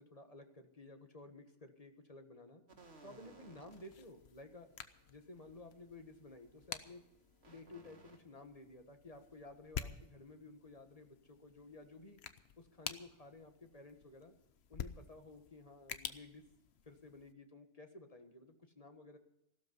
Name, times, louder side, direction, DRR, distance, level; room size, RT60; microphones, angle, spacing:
voice 1, 0.0-2.6 3.0-4.7 5.1-7.0 7.5-12.2 12.6-14.3 14.7-16.4 16.8-19.2, left 2 dB, 35° left, 6 dB, 1.6 m, -55 dB
sound 1, 2.7-8.2, right 2 dB, 80° right, 2.2 m, -63 dB
sound 2, 3.7-17.3, left 7 dB, 80° left, 1.1 m, -50 dB
15.5 x 13.0 x 5.5 m, 0.83 s
omnidirectional pair, 1.1 m